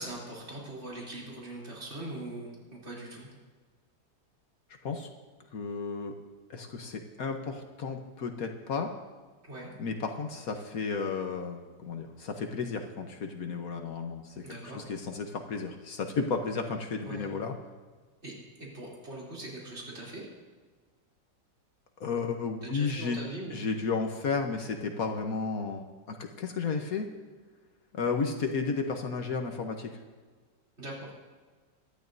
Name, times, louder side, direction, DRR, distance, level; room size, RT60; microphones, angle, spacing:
voice 1, 0.0-3.3 9.4-9.7 14.4-14.8 17.0-17.3 18.2-18.3 18.6-20.2 22.6-23.6 30.8-31.2, right 1 dB, 40° right, -4 dB, 3.6 m, -41 dB
voice 2, 5.5-6.2 6.5-8.9 9.8-17.5 22.0-23.2 23.5-27.1 27.9-29.9, left 4 dB, 60° left, 4 dB, 1.3 m, -33 dB
22.5 x 12.0 x 2.7 m, 1.4 s
omnidirectional pair, 1.9 m